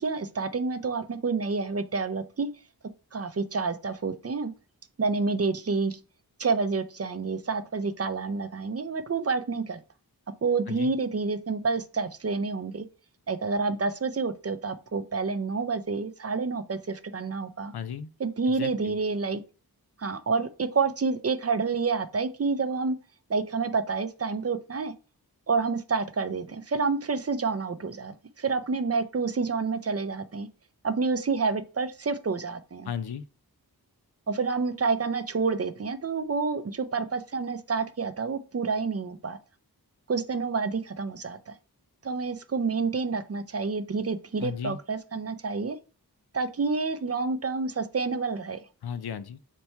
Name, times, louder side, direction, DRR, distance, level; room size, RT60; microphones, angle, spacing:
voice 1, 0.0-2.5 3.1-4.5 5.0-6.0 6.4-9.8 10.4-12.9 13.3-17.7 18.2-19.4 20.0-23.0 23.3-24.9 25.5-30.5 30.8-32.9 34.3-39.4 40.1-41.5 42.0-45.8 46.3-48.6, right 4 dB, 40° right, 0.5 m, -28 dB
voice 2, 17.7-18.1 18.5-19.0 32.8-33.2 44.4-44.8 48.8-49.4, left 8 dB, 75° left, 0.5 m, -35 dB
4.2 x 2.2 x 4.4 m
wide cardioid pair, 60°, 38 cm